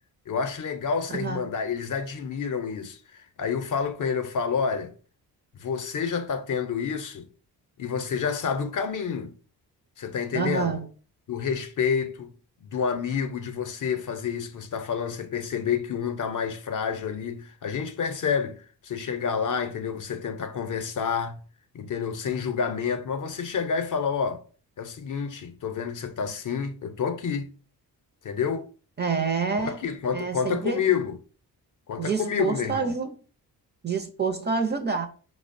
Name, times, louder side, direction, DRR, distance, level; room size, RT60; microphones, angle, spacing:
voice 1, 0.3-3.0 3.4-4.9 5.6-7.3 7.8-9.3 10.0-10.8 11.3-12.3 12.6-21.4 21.7-24.4 24.8-27.5 28.2-28.7 29.6-31.2 31.9-32.9, left 6 dB, 50° left, 0.6 m, -29 dB
voice 2, 1.1-1.4 10.3-10.9 29.0-29.8 30.1-30.8 32.0-33.2 33.8-35.1, right 5 dB, 25° right, 0.4 m, -27 dB
5.0 x 2.1 x 2.5 m
cardioid pair, 95°, 41 cm